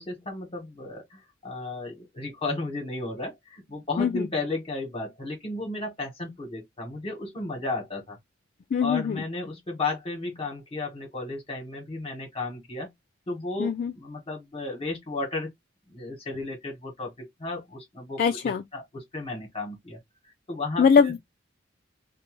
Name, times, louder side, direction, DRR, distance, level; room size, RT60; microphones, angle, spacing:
voice 1, 0.0-8.2 8.8-12.9 13.3-15.5 15.9-20.0 20.5-21.2, left 2 dB, 30° left, 1.2 m, -34 dB
voice 2, 8.7-9.2 13.6-13.9 18.2-18.6 20.8-21.2, left 6 dB, 50° left, 0.3 m, -22 dB
2.6 x 2.1 x 3.0 m
head